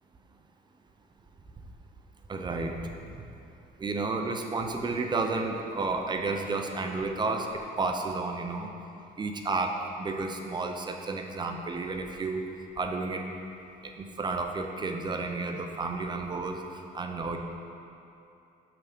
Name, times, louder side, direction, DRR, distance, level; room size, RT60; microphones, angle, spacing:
voice 1, 2.3-2.8 3.8-8.7 9.2-12.4 12.8-13.2 13.8-16.6 16.9-17.4, right 3 dB, 25° right, 3 dB, 0.7 m, -31 dB
6.2 x 6.0 x 5.1 m, 2.7 s
cardioid pair, 110°, 17 cm